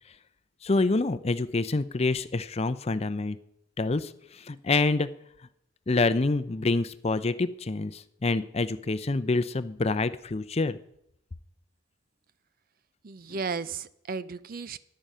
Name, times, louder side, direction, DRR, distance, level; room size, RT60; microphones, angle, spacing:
voice 1, 0.6-3.4 3.8-5.1 5.9-10.8, left 3 dB, 30° left, 14 dB, 0.5 m, -27 dB
voice 2, 13.0-14.8, right 5 dB, 50° right, 16 dB, 0.5 m, -34 dB
14.0 x 10.5 x 5.5 m, 0.76 s
head